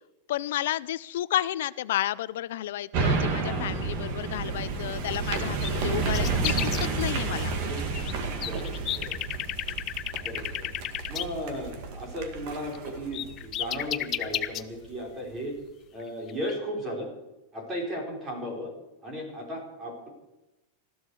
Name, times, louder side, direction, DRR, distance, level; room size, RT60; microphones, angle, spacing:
voice 1, 0.3-7.5, left 13 dB, 65° left, 17 dB, 0.5 m, -31 dB
sound 1, 2.9-14.4 14.8-14.9, right 4 dB, 40° right, 2.1 m, -31 dB
voice 2, 3.3-4.0 7.6-9.2 10.2-10.7 11.1-15.5 15.9-17.1 17.5-18.7 19.0-20.1, equal, 15° right, 0 dB, 4.1 m, -36 dB
sound 2, 4.9-5.2 5.4-6.9 7.5-8.1 8.4-11.2 12.7-12.8 13.1-14.6 16.0-16.1 16.3-16.5, left 12 dB, 25° left, 0.6 m, -32 dB
20.0 x 14.0 x 4.8 m, 0.97 s
supercardioid pair, 175°, 0 cm